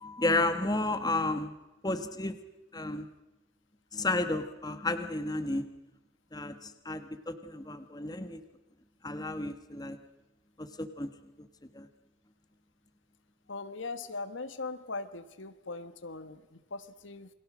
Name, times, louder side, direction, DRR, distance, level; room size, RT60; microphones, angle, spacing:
voice 1, 0.0-1.5 1.8-2.4 2.7-3.1 3.9-5.6 6.3-8.4 9.0-10.0 10.6-11.1 11.4-11.5 11.7-11.9, left 2 dB, 20° left, 9 dB, 1.5 m, -32 dB
voice 2, 13.5-17.3, left 3 dB, 75° left, 11 dB, 1.4 m, -40 dB
28.5 x 23.0 x 6.2 m, 1.0 s
head